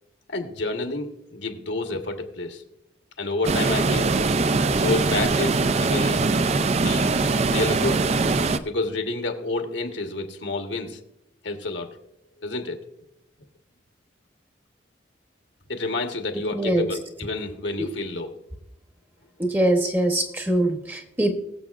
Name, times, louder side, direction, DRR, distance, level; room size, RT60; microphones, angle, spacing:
voice 1, 0.3-2.6 3.2-4.1 4.7-6.4 6.7-7.1 7.5-8.1 8.6-11.0 11.4-11.9 12.4-12.8 15.7-18.4, left 3 dB, 65° left, 5 dB, 1.3 m, -29 dB
sound 1, 3.4-8.6, right 3 dB, 35° right, 0.4 m, -22 dB
voice 2, 16.5-16.8 17.8-17.9 19.4-21.3, right 1 dB, 10° right, 4 dB, 0.9 m, -23 dB
21.0 x 7.4 x 2.4 m, 0.82 s
head